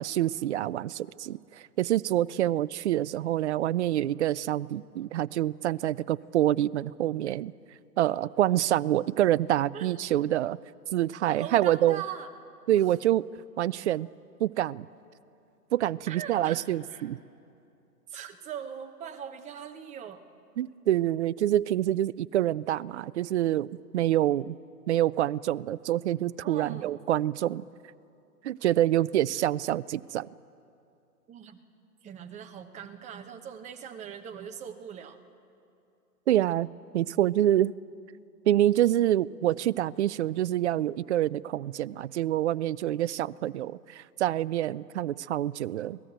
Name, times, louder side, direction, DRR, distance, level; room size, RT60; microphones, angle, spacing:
voice 1, 0.0-7.5 8.0-10.6 10.9-12.0 12.7-13.2 13.6-14.1 14.4-14.9 15.7-17.2 20.6-24.6 24.9-27.6 28.4-30.3 36.3-36.7 36.9-37.7 38.5-46.0, right 13 dB, 50° right, 19 dB, 0.4 m, -26 dB
voice 2, 11.3-12.3 16.1-16.6 16.9-17.1 18.1-20.2 26.4-26.9 31.3-31.6 32.0-35.2, right 8 dB, 15° right, 6 dB, 0.9 m, -41 dB
25.5 x 18.0 x 8.0 m, 2.6 s
hypercardioid pair, 140°, 48 cm